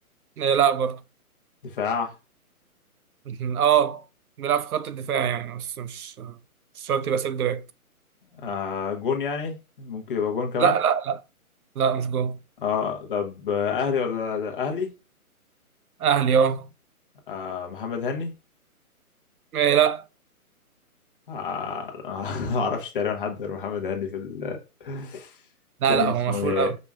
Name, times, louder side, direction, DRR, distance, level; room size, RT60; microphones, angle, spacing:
voice 1, 0.4-1.0 3.3-4.0 4.4-6.3 6.8-7.6 10.6-11.2 11.8-12.4 16.0-16.7 19.5-20.0 25.8-26.8, right 8 dB, 75° right, 0.6 m, -23 dB
voice 2, 1.7-2.1 8.4-10.7 12.6-14.9 17.3-18.3 21.3-25.3 25.9-26.7, left 6 dB, 35° left, 1.1 m, -28 dB
5.2 x 2.8 x 2.3 m
hypercardioid pair, 165°, 44 cm